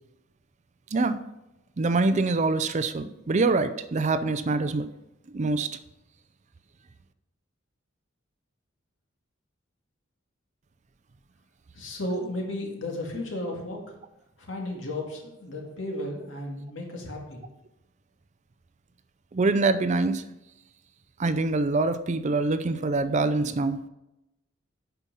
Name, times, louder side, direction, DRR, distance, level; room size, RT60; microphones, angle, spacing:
voice 1, 1.8-4.9 5.3-5.8 19.3-20.2 21.2-23.8, right 3 dB, 35° right, 0.4 m, -25 dB
voice 2, 11.7-13.8 14.4-17.4, left 1 dB, 75° left, 2.2 m, -34 dB
8.3 x 5.7 x 5.4 m
head